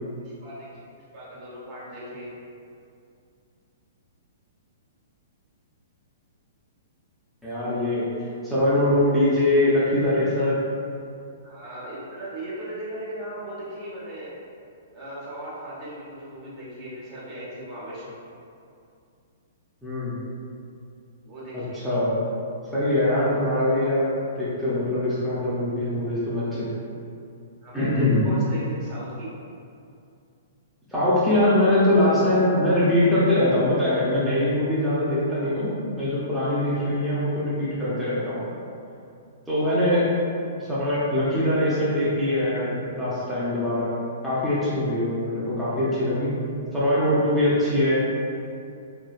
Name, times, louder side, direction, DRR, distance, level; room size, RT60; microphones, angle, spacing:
voice 1, 0.4-0.8 1.1-2.3 11.4-14.3 14.9-18.2 21.2-21.8 27.6-29.3 39.6-39.9, right 1 dB, 40° right, -8 dB, 0.9 m, -37 dB
voice 2, 7.4-8.1 8.4-10.6 19.8-20.2 21.5-22.2 22.7-26.7 27.7-28.2 30.9-38.4 39.5-40.0 40.6-43.9 44.2-46.3 46.7-48.0, left 1 dB, ahead, -13 dB, 0.7 m, -22 dB
3.1 x 2.2 x 2.3 m, 2.5 s
hypercardioid pair, 130°, 0 cm